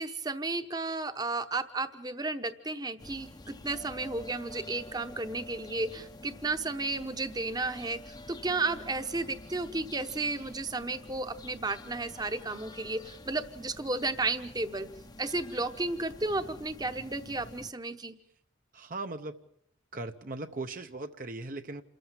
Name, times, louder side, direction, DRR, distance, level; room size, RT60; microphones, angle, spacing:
voice 1, 0.0-14.9 15.2-18.2, right 3 dB, 20° right, 9 dB, 0.9 m, -33 dB
sound 1, 3.0-17.7, left 2 dB, 20° left, 0.8 m, -48 dB
voice 2, 18.7-19.4 19.9-21.8, right 2 dB, 45° right, 7 dB, 0.8 m, -38 dB
28.5 x 14.0 x 7.4 m, 0.73 s
head